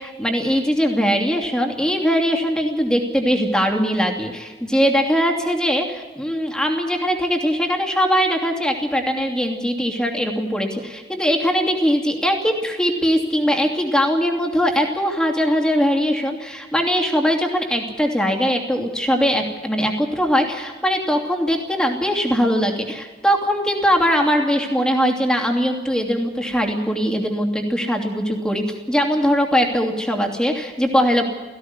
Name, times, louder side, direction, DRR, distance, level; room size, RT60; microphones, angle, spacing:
voice 1, 0.0-31.2, equal, 5° left, 2 dB, 2.8 m, -21 dB
17.5 x 16.0 x 9.7 m, 1.4 s
head